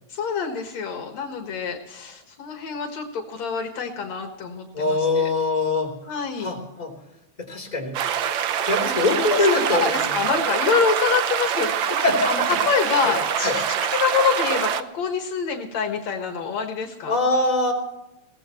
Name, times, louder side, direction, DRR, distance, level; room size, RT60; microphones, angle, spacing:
voice 1, 0.1-5.3 6.0-6.5 9.0-11.9 12.3-13.6 13.9-17.2, left 6 dB, 70° left, 4 dB, 2.7 m, -26 dB
voice 2, 4.7-5.9 6.4-6.9 7.4-7.9 8.4-10.2 12.0-12.4 13.0-13.1 13.4-13.5 17.1-17.7, left 2 dB, 15° left, 1 dB, 3.4 m, -23 dB
sound 1, 7.9-14.8, right 9 dB, 90° right, 1.0 m, -24 dB
22.0 x 17.0 x 3.1 m, 0.92 s
omnidirectional pair, 3.3 m